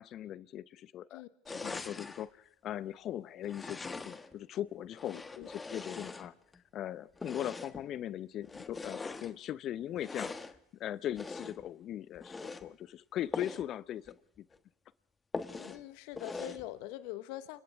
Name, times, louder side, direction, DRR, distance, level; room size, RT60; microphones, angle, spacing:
voice 1, 0.0-6.3 6.7-10.3 10.8-14.4, left 11 dB, 45° left, 18 dB, 0.8 m, -40 dB
sound 1, 1.4-2.3 3.4-4.4 4.9-6.6 7.2-7.9 8.4-9.3 10.0-10.6 11.1-11.7 12.2-12.7 13.3-13.7 14.1-14.2 14.5-14.6 15.3-15.8 16.2-16.7, left 3 dB, 20° left, 1.3 m, -42 dB
voice 2, 5.0-5.5 15.5-17.6, left 15 dB, 65° left, 12 dB, 1.3 m, -44 dB
29.5 x 25.5 x 3.6 m, 0.69 s
hypercardioid pair, 85°, 0 cm